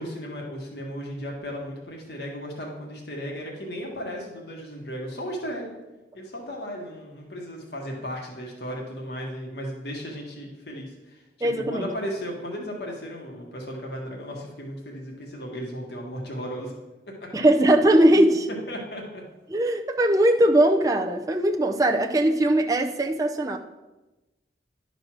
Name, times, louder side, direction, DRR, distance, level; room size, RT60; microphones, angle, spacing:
voice 1, 0.0-5.7 6.1-16.7 17.2-17.3 18.1-18.3 18.7-19.2, equal, 70° left, -1 dB, 1.6 m, -35 dB
voice 2, 11.4-11.9 17.3-18.5 19.5-23.6, right 1 dB, 20° right, 2 dB, 0.5 m, -20 dB
11.0 x 4.0 x 6.1 m, 1.1 s
head